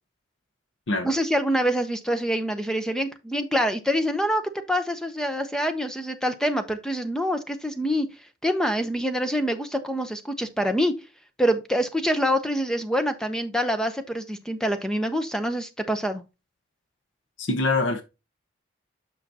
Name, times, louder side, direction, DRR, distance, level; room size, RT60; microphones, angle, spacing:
voice 1, 1.0-4.4 4.7-8.1 8.4-10.9 11.4-16.2, equal, 5° left, 0.7 m, -25 dB
voice 2, 17.4-18.0, left 2 dB, 85° left, 1.0 m, -24 dB
8.1 x 6.0 x 2.8 m
head